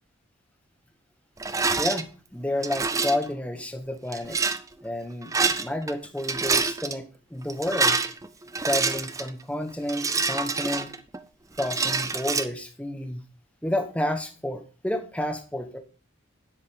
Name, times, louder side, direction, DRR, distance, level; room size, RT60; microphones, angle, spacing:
Rattle, 1.4-2.0 2.6-3.3 4.1-4.6 5.2-5.9 6.2-6.9 7.5-9.3 9.9-11.2 11.6-12.4, right 4 dB, 15° right, 0.4 m, -26 dB
voice 1, 1.8-4.4 4.8-8.0 8.6-10.9 11.6-13.2 13.6-15.8, left 1 dB, 5° left, 6 dB, 1.1 m, -30 dB
9.9 x 7.7 x 3.6 m, 0.36 s
head